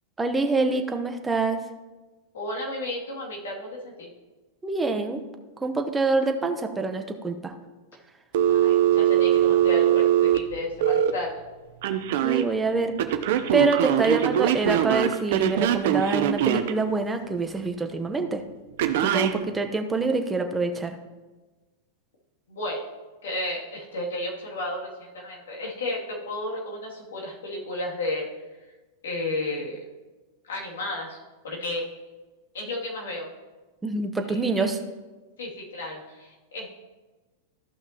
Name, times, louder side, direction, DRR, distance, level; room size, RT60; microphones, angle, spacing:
voice 1, 0.2-1.6 4.6-5.2 5.6-7.5 12.2-12.9 13.5-18.4 19.0-21.0 33.8-34.8, right 3 dB, 10° right, 5 dB, 0.9 m, -26 dB
voice 2, 2.3-4.1 8.5-11.4 22.5-22.8 23.2-28.3 29.0-29.8 30.4-31.2 31.4-31.9 32.5-33.3 34.2-34.7 35.4-36.7, left 1 dB, 85° left, -3 dB, 2.5 m, -33 dB
Telephone, 8.3-11.1 11.8-12.4 13.0-16.7 18.8-19.3, right 11 dB, 65° right, 0.7 m, -21 dB
14.0 x 5.8 x 2.9 m, 1.2 s
hypercardioid pair, 115°, 0 cm